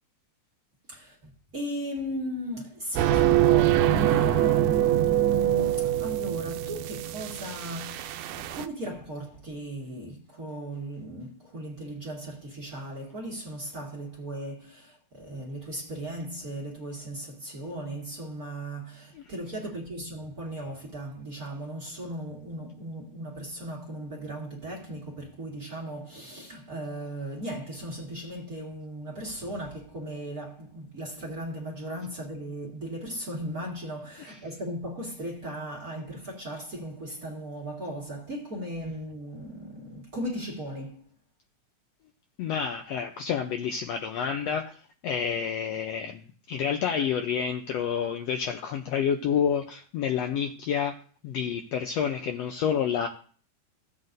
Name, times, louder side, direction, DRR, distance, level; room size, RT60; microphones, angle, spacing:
voice 1, 1.5-41.0, right 1 dB, 35° right, 1.7 m, -37 dB
sound 1, 3.0-8.7, right 13 dB, 85° right, 2.0 m, -24 dB
voice 2, 42.4-44.8 45.0-46.2 46.5-51.0 51.2-53.1, left 7 dB, 75° left, 1.5 m, -29 dB
15.5 x 8.0 x 2.6 m
omnidirectional pair, 3.5 m